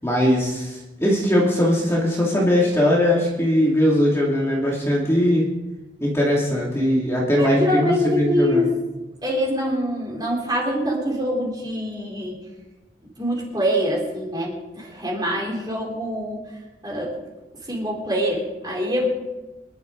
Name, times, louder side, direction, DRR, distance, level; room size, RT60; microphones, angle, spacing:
voice 1, 0.0-5.5 6.0-8.7, equal, 15° left, -4 dB, 2.5 m, -20 dB
voice 2, 7.4-8.7 9.2-12.4 13.2-16.4 16.8-17.1 17.7-19.1, equal, 25° right, -2 dB, 4.2 m, -24 dB
25.0 x 11.5 x 3.9 m, 1.1 s
head